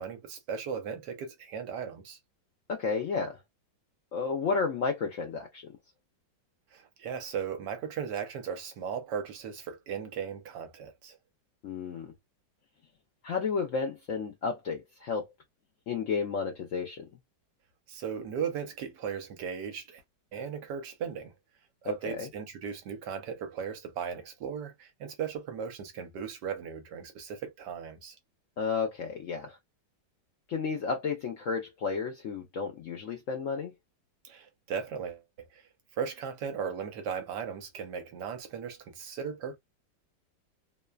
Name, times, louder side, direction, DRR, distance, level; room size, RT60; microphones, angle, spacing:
voice 1, 0.0-2.2 6.7-11.2 17.9-20.0 20.3-21.3 21.8-28.2 34.2-35.6 36.0-39.6, right 7 dB, 70° right, 1.3 m, -37 dB
voice 2, 2.7-3.4 4.1-5.7 11.6-12.1 13.2-15.3 15.9-17.1 21.9-22.3 28.6-29.6 30.5-33.7, left 5 dB, 75° left, 0.7 m, -32 dB
3.1 x 2.1 x 2.3 m
omnidirectional pair, 2.0 m